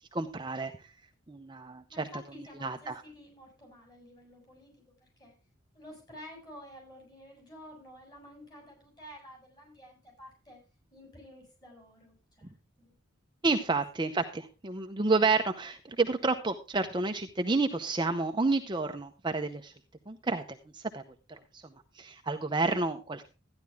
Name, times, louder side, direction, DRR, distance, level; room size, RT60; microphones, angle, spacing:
voice 1, 0.1-0.7 1.3-2.1 2.6-3.0 13.4-19.7 20.1-21.0 21.3-21.7 21.9-23.3, right 3 dB, 20° right, 6 dB, 0.7 m, -30 dB
voice 2, 1.9-5.4 5.7-10.6 10.9-12.9, equal, 20° left, 0 dB, 7.5 m, -51 dB
13.5 x 10.5 x 3.5 m, 0.30 s
head